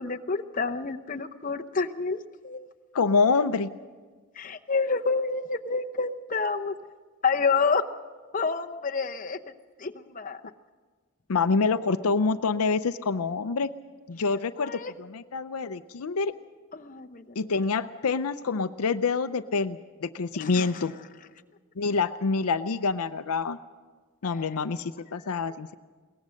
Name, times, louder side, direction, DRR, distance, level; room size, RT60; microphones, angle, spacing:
voice 1, 0.0-2.7 4.4-6.7 7.2-7.8 8.3-9.4 9.8-10.4 14.6-14.9 16.7-17.5 20.4-20.8 24.2-24.5 25.3-25.4, left 4 dB, 35° left, 6 dB, 0.8 m, -29 dB
voice 2, 2.9-3.7 11.3-13.7 14.1-14.7 15.0-16.3 17.4-20.9 21.8-23.6 24.2-25.7, left 4 dB, 80° left, 11 dB, 0.6 m, -26 dB
22.0 x 18.5 x 6.4 m, 1.4 s
head